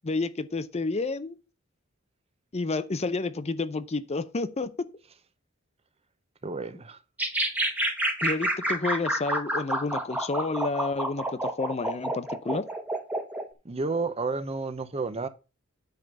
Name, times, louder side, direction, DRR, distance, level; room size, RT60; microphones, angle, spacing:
voice 1, 0.0-1.4 2.5-4.9 8.2-12.7, left 3 dB, 30° left, 0.6 m, -30 dB
voice 2, 6.4-7.0 13.6-15.3, right 3 dB, 30° right, 0.7 m, -31 dB
sound 1, 7.2-13.5, right 1 dB, 5° right, 1.2 m, -29 dB
9.3 x 3.8 x 6.7 m
head